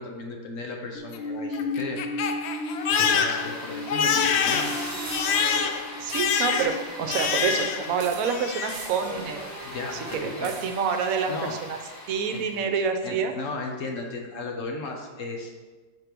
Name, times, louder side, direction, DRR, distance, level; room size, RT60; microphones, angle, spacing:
voice 1, 0.0-2.0 3.0-4.7 9.6-10.5 11.3-11.6 12.3-12.5 13.0-15.5, left 3 dB, 60° left, 2 dB, 1.1 m, -35 dB
Crying sobbing, 0.9-7.9 8.2-8.9, left 6 dB, 75° left, 0.6 m, -26 dB
sound 1, 2.5-12.7, equal, 15° left, 0.7 m, -39 dB
sound 2, 5.1-5.7 6.1-6.7 7.1-7.7 8.0-9.3 10.4-11.0, right 9 dB, 85° right, 1.1 m, -43 dB
voice 2, 6.0-9.4 9.9-11.3 11.7-11.8 12.1-13.3, right 6 dB, 70° right, 6 dB, 1.0 m, -27 dB
5.8 x 4.5 x 5.1 m, 1.4 s
omnidirectional pair, 1.7 m